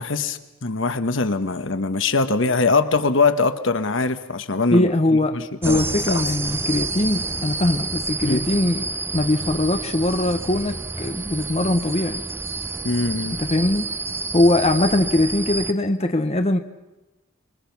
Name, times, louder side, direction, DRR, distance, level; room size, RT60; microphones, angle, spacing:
voice 1, 0.0-4.9 5.3-5.8 6.1-6.2 8.2-8.5 12.8-13.4, left 3 dB, 65° left, 1.3 m, -22 dB
voice 2, 4.7-5.4 5.6-12.2 13.3-13.9 14.3-16.6, left 1 dB, 30° left, 1.0 m, -21 dB
sound 1, 5.6-15.7, right 3 dB, 10° right, 0.7 m, -29 dB
26.5 x 22.5 x 6.0 m
head